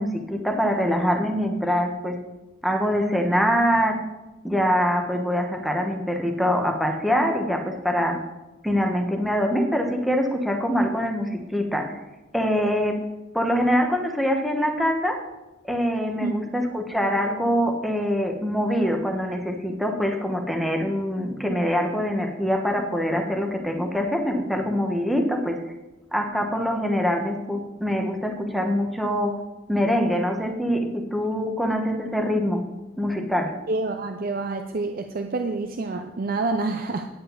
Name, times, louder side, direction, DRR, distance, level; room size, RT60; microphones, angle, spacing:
voice 1, 0.0-2.2 2.6-4.0 4.4-8.2 8.6-12.0 12.3-13.0 13.3-15.2 15.7-25.6 26.1-29.4 29.7-32.6 33.0-33.5, equal, ahead, 2 dB, 1.2 m, -24 dB
voice 2, 33.7-37.1, right 3 dB, 50° right, 6 dB, 0.6 m, -27 dB
9.9 x 5.4 x 8.1 m, 1.0 s
head